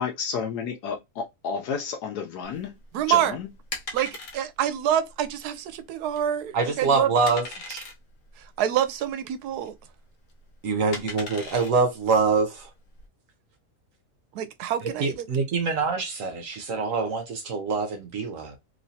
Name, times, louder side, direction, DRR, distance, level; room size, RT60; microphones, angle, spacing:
voice 1, 0.0-2.8 3.1-3.5, left 6 dB, 85° left, 1.2 m, -31 dB
sound 1, 2.4-13.1, left 3 dB, 60° left, 1.2 m, -41 dB
voice 2, 2.9-3.3 3.9-7.1 8.6-9.7 14.3-15.3, right 10 dB, 80° right, 1.1 m, -26 dB
voice 3, 6.5-7.5 10.6-12.7 14.8-18.6, right 4 dB, 60° right, 1.0 m, -25 dB
3.1 x 3.1 x 2.7 m
omnidirectional pair, 1.7 m